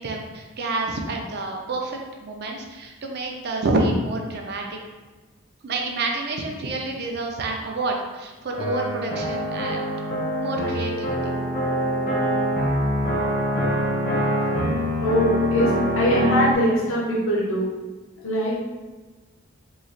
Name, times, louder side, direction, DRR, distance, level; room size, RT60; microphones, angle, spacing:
voice 1, 0.0-4.7 5.6-9.8 10.4-11.3, right 2 dB, 50° right, 1 dB, 0.5 m, -28 dB
sound 1, 8.6-16.5, equal, 45° left, 0.8 m, -24 dB
voice 2, 15.0-17.7 18.2-18.5, equal, 70° left, -6 dB, 0.9 m, -22 dB
3.1 x 2.4 x 3.9 m, 1.3 s
head